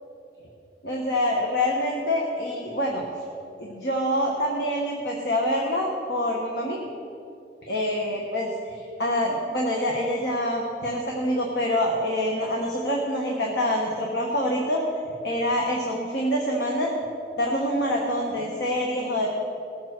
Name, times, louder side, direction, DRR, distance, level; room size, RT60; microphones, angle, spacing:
voice 1, 0.8-3.0 3.6-6.8 7.7-14.8 15.2-16.9 17.4-19.3, left 1 dB, 60° left, -1 dB, 1.3 m, -26 dB
19.0 x 7.3 x 4.6 m, 2.7 s
head